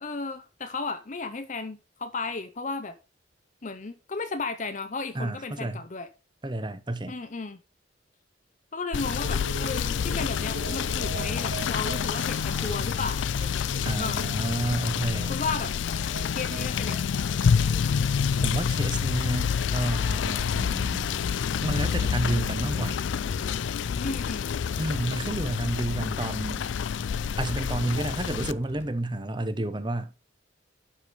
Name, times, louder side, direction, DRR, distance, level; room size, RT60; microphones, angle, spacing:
voice 1, 0.0-3.0 3.6-6.1 7.1-7.6 8.7-13.6 14.0-14.2 15.3-15.7 16.3-17.1 24.0-24.5, left 3 dB, 40° left, 0.7 m, -34 dB
voice 2, 5.1-5.8 6.4-7.2 13.8-15.4 17.5-17.6 18.4-21.2 21.6-23.0 24.8-26.7 27.4-30.1, right 1 dB, 25° right, 0.8 m, -30 dB
Rain / Motor vehicle (road), 8.9-28.5, left 7 dB, 70° left, 0.4 m, -28 dB
sound 1, 9.2-17.9, right 4 dB, 75° right, 2.2 m, -43 dB
sound 2, 20.5-29.0, left 1 dB, 10° left, 1.5 m, -48 dB
11.5 x 4.9 x 5.0 m
head